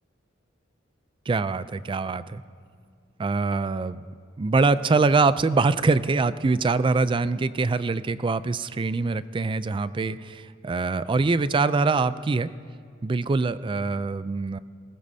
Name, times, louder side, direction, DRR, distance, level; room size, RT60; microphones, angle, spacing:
voice 1, 1.3-2.4 3.2-4.0 4.4-12.5 13.0-14.6, right 3 dB, 25° right, 15 dB, 0.3 m, -24 dB
20.5 x 19.0 x 2.7 m, 2.1 s
head